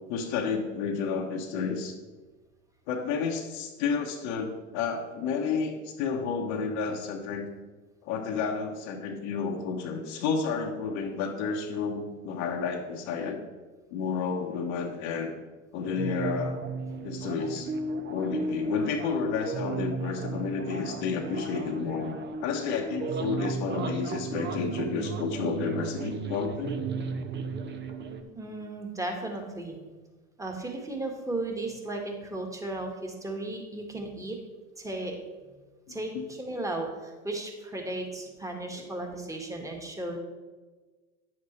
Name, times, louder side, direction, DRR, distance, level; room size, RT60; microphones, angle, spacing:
voice 1, 0.1-1.9 2.9-7.5 8.0-13.4 13.9-15.3 15.7-16.6 17.0-17.7 18.1-22.1 22.4-26.8 35.9-36.3 38.7-38.9, left 5 dB, 65° left, 1 dB, 1.2 m, -31 dB
sound 1, 15.8-28.2, right 3 dB, 30° right, 0.8 m, -34 dB
voice 2, 28.4-29.8 30.4-34.4 34.8-35.2 35.9-40.2, right 2 dB, 10° right, 2 dB, 1.6 m, -35 dB
9.4 x 7.4 x 3.2 m, 1.3 s
hypercardioid pair, 85°, 36 cm